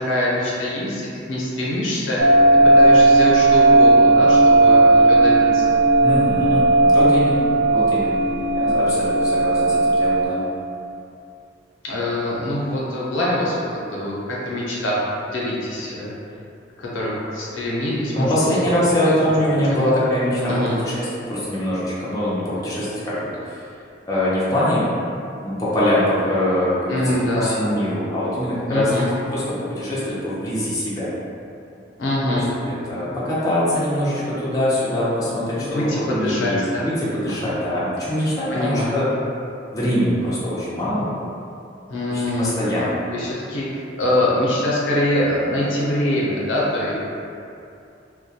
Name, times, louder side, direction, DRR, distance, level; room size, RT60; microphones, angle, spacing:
voice 1, 0.0-2.2 2.8-5.7 11.8-15.0 15.2-16.1 16.8-18.5 18.8-19.1 19.7-19.8 20.5-20.8 26.9-27.6 28.7-29.1 32.0-32.5 35.6-36.8 38.2-39.0 41.9-42.5 43.1-47.0, left 1 dB, 80° left, -6 dB, 0.5 m, -24 dB
sound 1, 2.2-10.3, right 2 dB, 65° right, 0.6 m, -15 dB
voice 2, 6.0-7.5 7.7-8.2 8.5-10.4 18.1-23.6 24.1-24.9 25.4-27.0 27.4-28.9 29.3-29.4 29.7-31.1 32.3-39.1 39.7-41.1 42.1-43.0, left 1 dB, 20° left, -10 dB, 0.5 m, -23 dB
2.1 x 2.1 x 2.7 m, 2.6 s
head